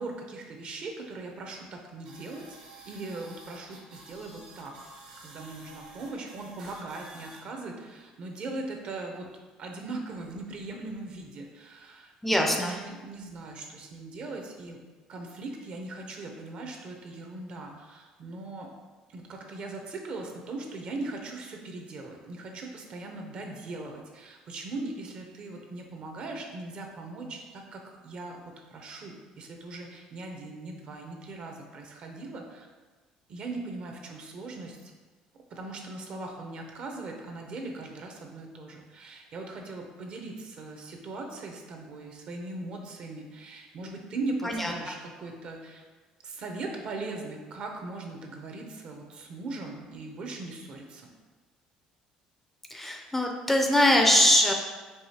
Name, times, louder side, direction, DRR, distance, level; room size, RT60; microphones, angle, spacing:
voice 1, 0.0-2.6 2.9-4.7 5.2-9.3 9.6-14.8 15.1-18.7 19.1-32.7 33.3-34.9 35.5-45.8 46.2-51.1, right 2 dB, 50° right, 2 dB, 0.7 m, -39 dB
sound 1, 2.0-7.4, right 2 dB, 90° right, 1.3 m, -50 dB
voice 2, 12.2-12.8 44.4-44.9 52.7-54.5, left 1 dB, 10° left, 2 dB, 0.4 m, -23 dB
4.7 x 2.8 x 2.8 m, 1.3 s
cardioid pair, 110°, 2 cm